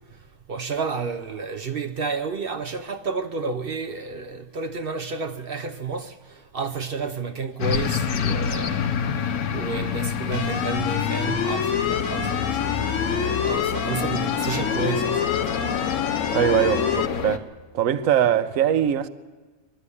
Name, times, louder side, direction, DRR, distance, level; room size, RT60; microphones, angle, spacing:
voice 1, 0.5-8.9 9.5-15.4, right 4 dB, 50° right, 0.8 m, -31 dB
sound 1, 7.6-17.4, left 7 dB, 85° left, 1.4 m, -28 dB
sound 2, 7.6-8.7 13.0-13.3 13.6-16.4, left 6 dB, 40° left, 0.9 m, -39 dB
sound 3, 10.3-17.1, left 7 dB, 60° left, 1.3 m, -27 dB
voice 2, 16.3-17.5 17.7-19.1, right 9 dB, 70° right, 1.2 m, -21 dB
22.0 x 13.0 x 9.8 m
omnidirectional pair, 1.5 m